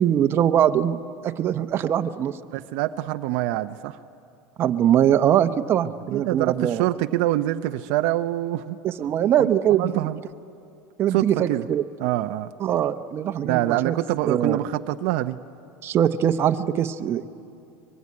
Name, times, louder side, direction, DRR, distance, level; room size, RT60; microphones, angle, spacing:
voice 1, 0.0-2.4 4.6-6.8 8.8-10.1 11.0-11.8 12.6-13.9 14.3-14.6 15.8-17.3, right 10 dB, 35° right, 9 dB, 0.9 m, -22 dB
voice 2, 2.5-4.0 6.1-8.8 9.4-10.2 11.1-11.6 12.0-12.5 13.4-15.4, right 15 dB, 65° right, 9 dB, 0.6 m, -25 dB
23.5 x 22.0 x 9.6 m, 2.6 s
supercardioid pair, 130°, 7 cm